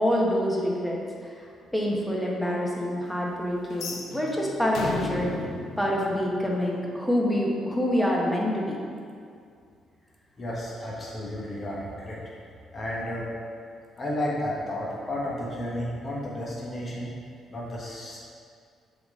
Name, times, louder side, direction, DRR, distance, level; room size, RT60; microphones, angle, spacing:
voice 1, 0.0-1.3 1.7-5.5 5.8-8.8, equal, 5° left, -3 dB, 1.1 m, -26 dB
sound 1, 3.7-6.8, left 3 dB, 70° left, 0.7 m, -35 dB
voice 2, 10.4-12.2 12.7-13.3 14.0-17.1 17.5-18.3, left 1 dB, 35° left, -5 dB, 1.2 m, -32 dB
7.0 x 4.1 x 3.6 m, 2.3 s
cardioid pair, 90°, 0 cm